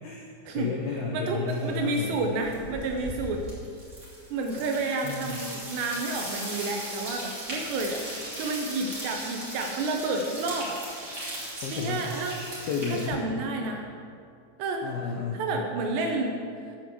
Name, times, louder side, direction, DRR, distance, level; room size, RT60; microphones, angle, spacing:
voice 1, 0.0-2.2 5.0-5.4 11.6-12.1 12.6-13.2 14.8-15.4, left 5 dB, 85° left, -1 dB, 2.1 m, -32 dB
voice 2, 1.1-3.4 4.3-8.0 8.4-10.8 11.7-12.4 12.9-13.9 14.6-15.0 15.3-16.4, right 3 dB, 75° right, 3 dB, 2.7 m, -30 dB
sound 1, 1.5-1.9 2.1-13.1, right 1 dB, 20° right, 2.3 m, -38 dB
8.9 x 8.8 x 7.2 m, 2.3 s
omnidirectional pair, 5.6 m